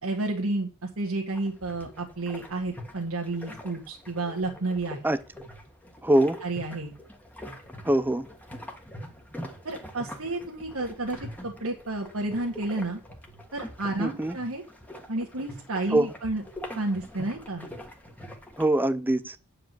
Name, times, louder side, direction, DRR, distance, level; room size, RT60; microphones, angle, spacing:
voice 1, 0.0-0.7 1.0-5.0 6.4-6.9 9.7-13.0 13.5-14.6 15.1-16.4 16.7-17.7, right 2 dB, 75° right, 1.7 m, -31 dB
sound 1, 1.3-18.6, equal, 5° left, 1.4 m, -44 dB
voice 2, 6.0-6.4 7.8-8.3 14.0-14.4 15.9-16.1 18.6-19.4, right 1 dB, 10° right, 0.5 m, -23 dB
8.9 x 4.9 x 7.7 m
head